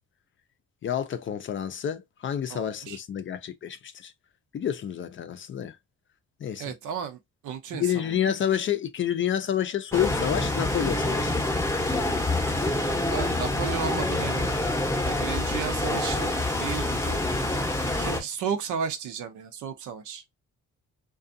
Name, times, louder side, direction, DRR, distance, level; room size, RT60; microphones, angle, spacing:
voice 1, 0.8-4.1 4.5-5.8 6.4-6.7 7.7-11.3 15.1-15.2, left 9 dB, 40° left, 0.4 m, -29 dB
voice 2, 2.5-3.0 6.6-8.3 13.1-14.6 15.0-16.3 16.6-17.2 17.9-20.2, right 7 dB, 80° right, 0.7 m, -34 dB
sound 1, 9.9-18.2, left 2 dB, 10° left, 0.7 m, -26 dB
2.5 x 2.3 x 2.5 m
cardioid pair, 90°, 30 cm